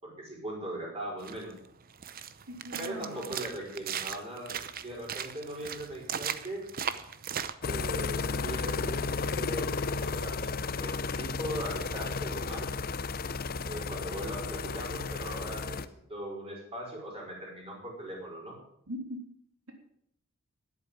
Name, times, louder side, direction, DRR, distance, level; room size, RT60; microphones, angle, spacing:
voice 1, 0.0-1.5 2.8-4.6 4.8-6.7 7.6-12.7 13.6-15.8 16.1-18.6, right 1 dB, 25° right, -2 dB, 5.1 m, -40 dB
sound 1, 1.2-7.5, right 8 dB, 40° right, 0.7 m, -38 dB
voice 2, 2.5-3.4 18.9-19.2, equal, 80° right, 2 dB, 3.3 m, -40 dB
sound 2, 7.6-15.9, left 4 dB, 45° left, 0.6 m, -33 dB
11.0 x 8.5 x 8.8 m, 0.72 s
head